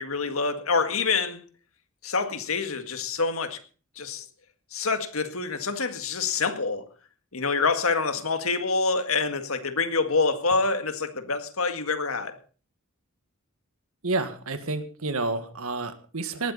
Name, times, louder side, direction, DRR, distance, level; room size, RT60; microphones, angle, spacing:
voice 1, 0.0-1.4 2.0-3.6 4.0-4.2 4.7-6.9 7.3-12.4, left 4 dB, 80° left, 8 dB, 1.9 m, -26 dB
voice 2, 14.0-16.5, right 3 dB, 85° right, 9 dB, 1.9 m, -29 dB
18.5 x 12.5 x 4.2 m, 0.39 s
head